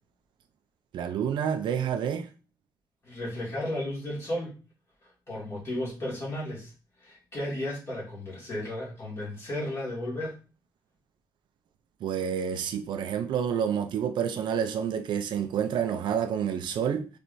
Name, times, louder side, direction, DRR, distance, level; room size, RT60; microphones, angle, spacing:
voice 1, 0.9-2.3 12.0-17.1, right 8 dB, 70° right, 0.5 m, -28 dB
voice 2, 3.0-4.5 5.3-6.7 7.0-10.4, left 1 dB, 30° left, 2.2 m, -34 dB
4.4 x 3.3 x 2.6 m
wide cardioid pair, 170°, 8 cm